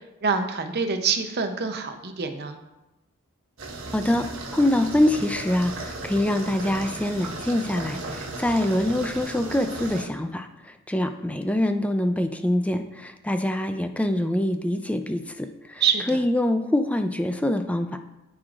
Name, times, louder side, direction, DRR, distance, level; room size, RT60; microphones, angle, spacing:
voice 1, 0.2-2.6 15.8-16.2, right 5 dB, 50° right, 6 dB, 0.7 m, -25 dB
sound 1, 3.6-10.0, right 2 dB, 65° right, 1.3 m, -35 dB
voice 2, 3.9-18.0, left 1 dB, 5° left, 7 dB, 0.4 m, -25 dB
13.5 x 4.9 x 2.5 m, 0.98 s
head